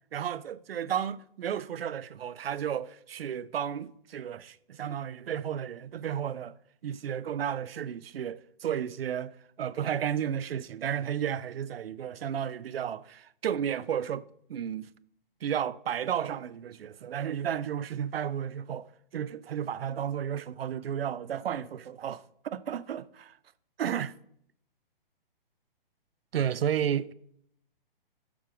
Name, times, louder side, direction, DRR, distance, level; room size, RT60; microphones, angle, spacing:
voice 1, 0.1-6.6 6.8-14.9 15.4-18.9 19.1-23.4 23.8-24.1 26.3-27.1, right 9 dB, 85° right, 0.5 m, -33 dB
7.2 x 4.5 x 4.8 m
hypercardioid pair, 140°, 29 cm